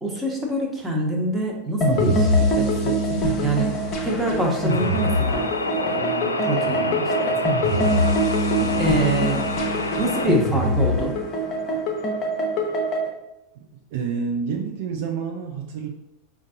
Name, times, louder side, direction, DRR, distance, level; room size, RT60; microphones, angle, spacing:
voice 1, 0.0-3.7 4.0-8.5 8.8-9.5 10.0-11.2, right 1 dB, 10° right, -2 dB, 1.2 m, -26 dB
Short chillout loop for games or layering, 1.8-13.1, equal, 35° left, 0.8 m, -23 dB
sound 1, 4.7-10.3, left 3 dB, 80° left, 0.3 m, -28 dB
voice 2, 6.6-7.0 8.6-8.9 13.6-13.7 13.9-15.9, right 6 dB, 55° right, 2 dB, 0.4 m, -29 dB
5.1 x 2.5 x 3.8 m, 0.88 s
figure-of-eight pair, 85°, 0 cm